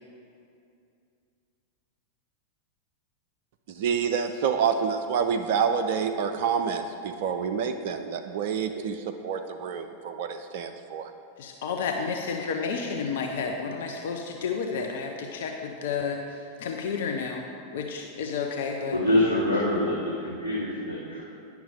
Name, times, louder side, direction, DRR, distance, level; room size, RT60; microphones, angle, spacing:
voice 1, 3.7-11.1, right 6 dB, 50° right, 6 dB, 0.4 m, -28 dB
voice 2, 11.4-17.4 17.7-19.0, left 5 dB, 55° left, 3 dB, 0.6 m, -31 dB
voice 3, 18.9-21.2, left 1 dB, 80° left, -7 dB, 1.3 m, -25 dB
10.0 x 5.9 x 3.6 m, 2.5 s
figure-of-eight pair, 90°, 0 cm